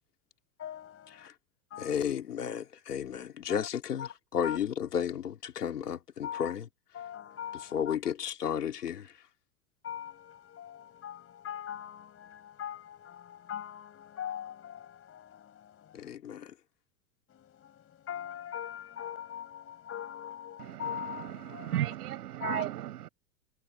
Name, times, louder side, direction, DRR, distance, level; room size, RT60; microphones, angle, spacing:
voice 1, 0.6-1.3 1.7-2.0 3.5-3.6 4.0-4.1 4.4-4.6 6.2-6.5 6.9-8.0 9.8-16.2 17.3-21.8 22.4-22.6, left 9 dB, 30° left, 7.4 m, -41 dB
voice 2, 1.8-6.7 7.5-9.1 15.9-16.5, left 8 dB, 90° left, 3.4 m, -33 dB
voice 3, 20.6-23.1, right 13 dB, 75° right, 6.3 m, -35 dB
hypercardioid pair, 110°, 46 cm